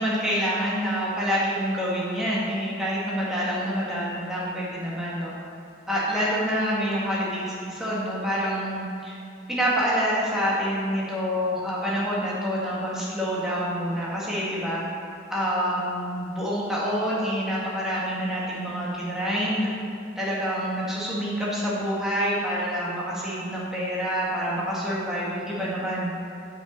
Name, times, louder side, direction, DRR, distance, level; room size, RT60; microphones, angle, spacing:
voice 1, 0.0-5.3 5.9-9.2 9.5-14.8 15.3-19.7 20.2-26.1, equal, 5° right, -7 dB, 1.8 m, -27 dB
8.0 x 5.5 x 5.3 m, 2.6 s
head